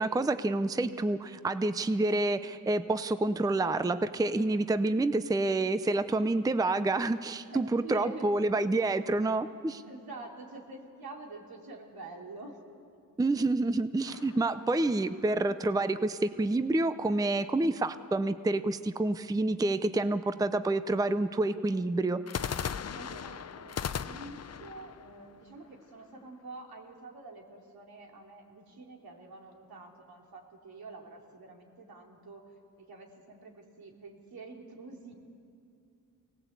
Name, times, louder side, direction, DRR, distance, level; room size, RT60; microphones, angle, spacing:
voice 1, 0.0-9.8 13.2-22.2, right 2 dB, 10° right, 12 dB, 0.6 m, -28 dB
voice 2, 7.5-8.4 9.9-12.6 22.9-32.4 32.8-35.1, right 2 dB, 80° right, 0 dB, 3.5 m, -47 dB
sound 1, 14.0-15.5 22.3-26.2, left 7 dB, 45° left, 0.7 m, -39 dB
25.0 x 18.5 x 8.2 m, 2.4 s
wide cardioid pair, 105°, 36 cm